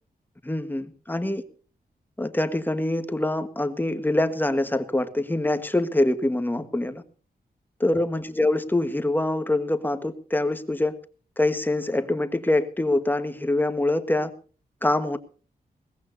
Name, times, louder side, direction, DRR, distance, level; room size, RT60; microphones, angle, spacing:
voice 1, 0.4-1.4 2.2-7.0 7.8-11.0 11.4-14.3 14.8-15.2, left 1 dB, 10° left, 9 dB, 1.5 m, -24 dB
21.5 x 18.0 x 2.8 m, 0.38 s
wide cardioid pair, 135°, 16 cm